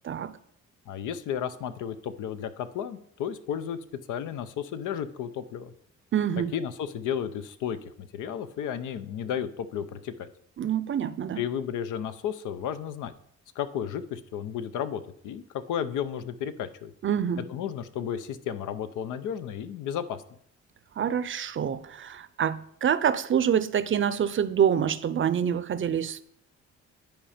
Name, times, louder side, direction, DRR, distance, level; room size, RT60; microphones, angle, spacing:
voice 1, 0.9-3.8 4.1-5.7 6.5-10.3 11.4-13.1 13.6-16.9 17.5-20.2, left 9 dB, 85° left, 0.7 m, -33 dB
voice 2, 6.1-6.5 10.6-11.4 17.0-17.4 21.0-26.2, right 8 dB, 40° right, 0.6 m, -26 dB
10.5 x 4.4 x 5.0 m
cardioid pair, 90°, 30 cm